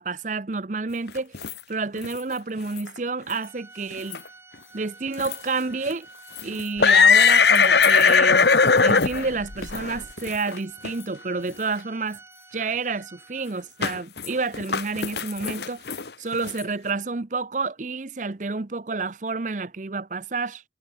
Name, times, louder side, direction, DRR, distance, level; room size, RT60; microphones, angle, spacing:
voice 1, 0.0-4.2 4.7-6.1 6.4-8.5 8.8-12.2 12.5-15.8 16.2-20.6, right 4 dB, 45° right, 0.7 m, -29 dB
sound 1, 1.1-1.5 2.0-2.2 2.8-2.9 3.3-3.4 3.9-4.3 5.2-5.4 5.9-6.0 6.4-10.6 10.8-10.9 11.7-11.8 13.8-14.3 14.5-16.6, left 5 dB, 70° left, 1.6 m, -19 dB
Organ, 3.3-13.9, right 3 dB, 15° right, 7.7 m, -49 dB
head